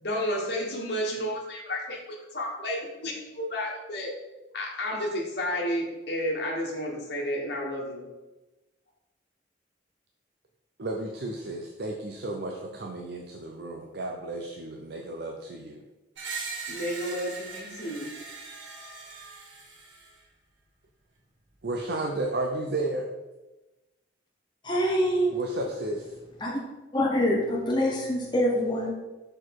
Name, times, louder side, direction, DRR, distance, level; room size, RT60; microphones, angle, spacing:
voice 1, 0.0-4.1 4.5-8.0 16.7-18.1, equal, 60° left, -2 dB, 1.4 m, -31 dB
voice 2, 10.8-15.8 21.6-23.1 25.3-26.1, right 2 dB, 55° right, 1 dB, 0.6 m, -33 dB
Screech, 16.2-20.2, right 4 dB, 85° right, 1.5 m, -40 dB
voice 3, 24.6-25.4 26.4-26.6 26.9-28.9, equal, 25° left, -2 dB, 0.8 m, -25 dB
6.3 x 4.4 x 4.7 m, 1.1 s
head